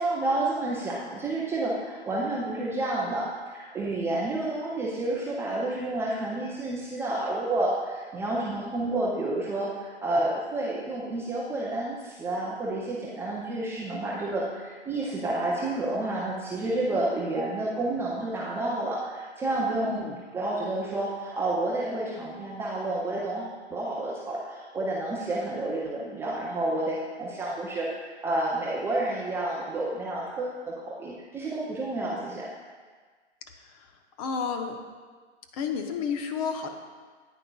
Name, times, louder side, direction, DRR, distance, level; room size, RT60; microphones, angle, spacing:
voice 1, 0.0-32.5, right 2 dB, 5° right, -5 dB, 0.5 m, -30 dB
voice 2, 19.8-20.2 34.2-34.8 35.5-36.7, left 6 dB, 30° left, 5 dB, 0.7 m, -31 dB
9.8 x 9.0 x 2.3 m, 1.5 s
hypercardioid pair, 125°, 35 cm